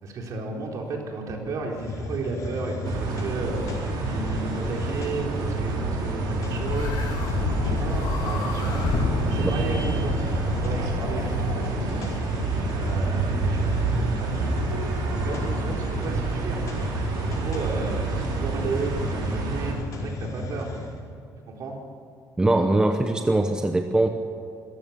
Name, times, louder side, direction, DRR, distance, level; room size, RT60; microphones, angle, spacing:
voice 1, 0.0-7.3 7.5-10.3 10.6-12.2 12.7-14.6 15.0-16.6 17.4-18.0 18.4-20.7 21.5-21.8, right 3 dB, 55° right, 0 dB, 4.0 m, -33 dB
Hiss, 1.7-21.0, left 2 dB, 50° left, 4.7 m, -34 dB
sound 1, 2.8-19.7, right 3 dB, 85° right, 4.1 m, -28 dB
sound 2, 6.6-11.7, left 5 dB, 75° left, 2.4 m, -30 dB
voice 2, 22.4-24.1, right 2 dB, 10° right, 5 dB, 0.9 m, -21 dB
25.0 x 15.0 x 7.1 m, 2.4 s
cardioid pair, 155°, 7 cm